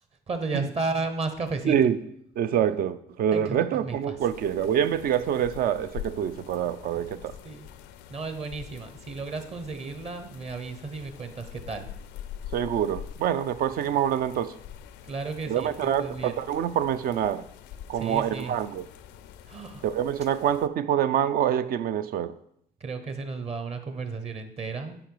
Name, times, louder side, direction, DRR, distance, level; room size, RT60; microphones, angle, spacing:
voice 1, 0.3-1.7 3.3-4.2 6.9-7.2 7.4-7.7 8.1-11.9 15.0-16.3 18.0-18.5 19.5-19.8 22.8-25.0, right 3 dB, 40° right, 8 dB, 0.9 m, -33 dB
voice 2, 1.6-2.0 2.4-7.3 12.5-14.6 15.5-17.5 17.9-18.9 19.8-22.4, right 9 dB, 60° right, 12 dB, 0.5 m, -26 dB
sound 1, 4.2-20.7, left 9 dB, 90° left, 0.5 m, -45 dB
9.0 x 4.8 x 4.6 m, 0.71 s
cardioid pair, 110°, 17 cm